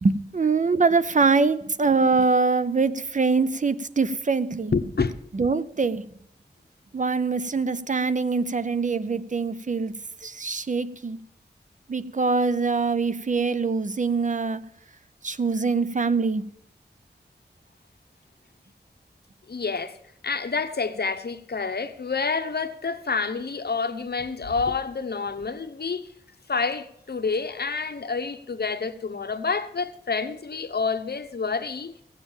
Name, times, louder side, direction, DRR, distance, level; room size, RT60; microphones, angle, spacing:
voice 1, 0.0-4.7 5.3-6.0 6.9-10.0 10.2-11.2 11.9-14.7 15.2-16.4, right 4 dB, 45° right, 0.6 m, -23 dB
voice 2, 4.7-5.1 19.5-20.0 20.2-26.1 26.5-31.9, left 4 dB, 65° left, 0.9 m, -28 dB
16.5 x 7.3 x 7.1 m
wide cardioid pair, 85°, 18 cm